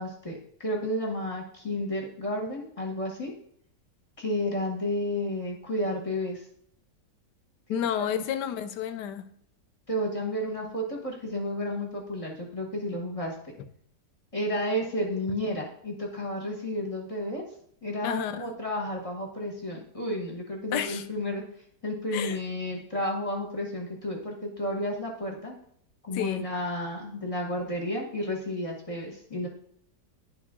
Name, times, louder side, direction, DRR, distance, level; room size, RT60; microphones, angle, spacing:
voice 1, 0.0-3.3 4.2-6.4 8.0-8.2 9.9-13.3 14.3-17.4 17.8-21.4 21.8-25.5 26.0-29.5, left 1 dB, 25° left, -1 dB, 1.1 m, -32 dB
voice 2, 7.7-9.2 18.0-18.5 20.7-21.0 22.1-22.4 26.1-26.4, left 9 dB, 85° left, 12 dB, 1.2 m, -31 dB
10.5 x 3.7 x 3.6 m, 0.65 s
omnidirectional pair, 1.8 m